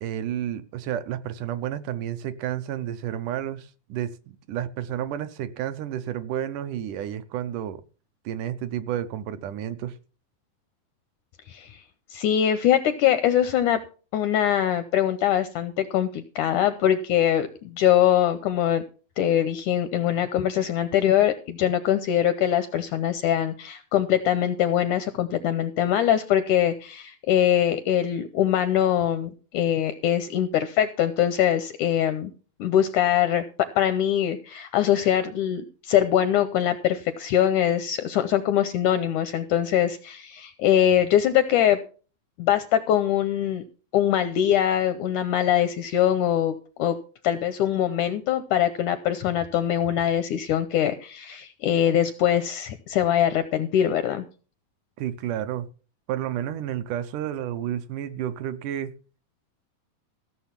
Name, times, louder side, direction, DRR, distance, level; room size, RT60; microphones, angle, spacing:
voice 1, 0.0-7.8 8.3-10.0 55.0-55.7 56.1-58.9, right 10 dB, 75° right, 2.0 m, -31 dB
voice 2, 11.5-11.8 12.1-13.8 14.1-18.8 19.2-32.3 32.6-41.8 42.4-43.6 43.9-47.0 47.2-54.2, left 10 dB, 80° left, 1.8 m, -23 dB
15.5 x 6.7 x 5.8 m
omnidirectional pair, 4.1 m